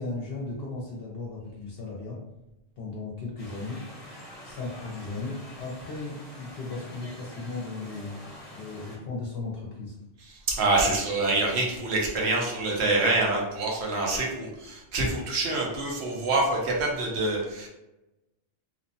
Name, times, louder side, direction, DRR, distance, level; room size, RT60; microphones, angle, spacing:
voice 1, 0.0-2.2 2.8-3.8 4.4-9.9, left 3 dB, 65° left, -3 dB, 0.8 m, -36 dB
sound 1, 3.4-9.0, left 1 dB, 35° left, 1.0 m, -45 dB
voice 2, 10.3-17.7, right 2 dB, 75° right, -1 dB, 1.0 m, -26 dB
2.9 x 2.0 x 2.6 m, 0.96 s
omnidirectional pair, 1.1 m